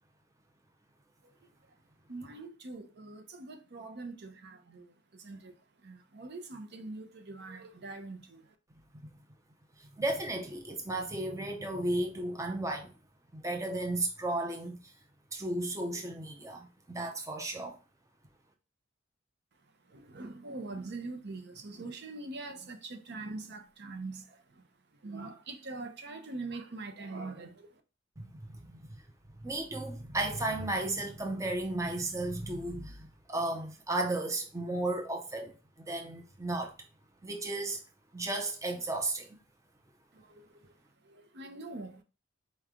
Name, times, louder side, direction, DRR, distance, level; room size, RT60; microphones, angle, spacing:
voice 1, 2.1-5.5 5.8-8.5 19.9-24.6 25.0-27.7 40.1-40.5 41.0-42.0, right 3 dB, 55° right, 0.7 m, -43 dB
voice 2, 10.0-12.9 13.3-14.8 15.3-17.8 28.2-28.9 29.4-35.5 35.8-36.7 37.2-37.8 38.1-39.3, right 2 dB, 15° right, 0.6 m, -34 dB
4.4 x 3.2 x 3.6 m
head